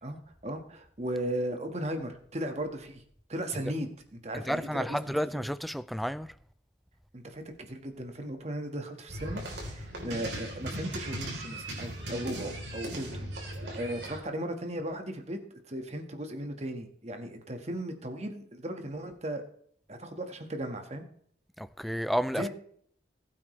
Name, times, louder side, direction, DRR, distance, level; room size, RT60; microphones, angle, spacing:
voice 1, 0.0-3.0 3.3-5.0 7.1-19.4 19.9-21.0 22.4-22.5, right 1 dB, 40° right, 1.6 m, -36 dB
voice 2, 4.5-6.3 21.6-22.4, equal, ahead, 0.4 m, -31 dB
sound 1, 9.1-14.2, right 1 dB, 80° right, 3.8 m, -38 dB
20.0 x 8.8 x 3.3 m
head